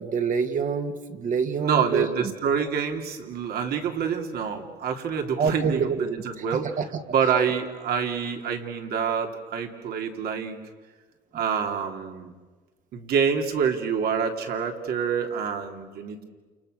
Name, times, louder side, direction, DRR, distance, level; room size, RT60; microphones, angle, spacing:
voice 1, 0.0-2.3 2.6-2.7 5.4-6.9, right 5 dB, 50° right, 6 dB, 2.2 m, -27 dB
voice 2, 1.6-6.7 7.1-10.6 11.3-12.3 12.9-16.2, right 7 dB, 65° right, 4 dB, 3.2 m, -27 dB
30.0 x 29.0 x 6.7 m, 1.4 s
cardioid pair, 110°, 17 cm